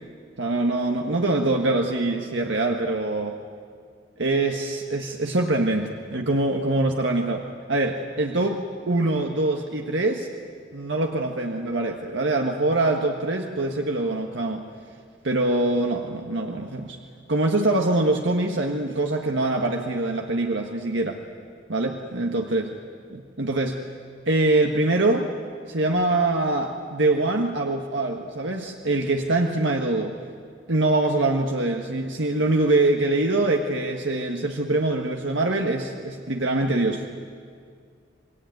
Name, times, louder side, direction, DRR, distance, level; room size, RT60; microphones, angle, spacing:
voice 1, 0.4-3.4 4.2-8.6 8.9-10.3 10.7-14.7 15.2-17.0 17.3-21.2 21.7-22.7 23.1-23.8 24.2-25.3 25.7-30.1 30.7-37.0, right 2 dB, 70° right, 2 dB, 1.6 m, -24 dB
28.0 x 20.5 x 9.2 m, 2.1 s
head